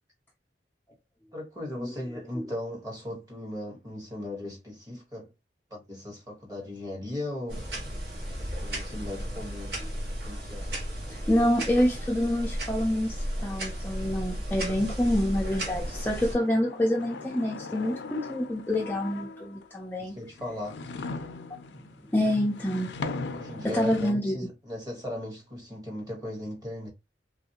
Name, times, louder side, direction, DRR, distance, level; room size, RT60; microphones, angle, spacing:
voice 1, 1.3-5.3 5.7-7.6 8.6-9.8 10.2-10.7 20.0-20.8 23.3-26.9, left 1 dB, 20° right, 1.2 m, -37 dB
sound 1, 7.5-16.4, equal, 65° right, 1.3 m, -34 dB
voice 2, 11.1-20.2 22.1-22.9 23.6-24.3, left 1 dB, 10° left, 0.4 m, -27 dB
sound 2, 15.3-19.7 20.3-24.1, left 3 dB, 80° left, 0.4 m, -39 dB
3.1 x 2.6 x 2.8 m
head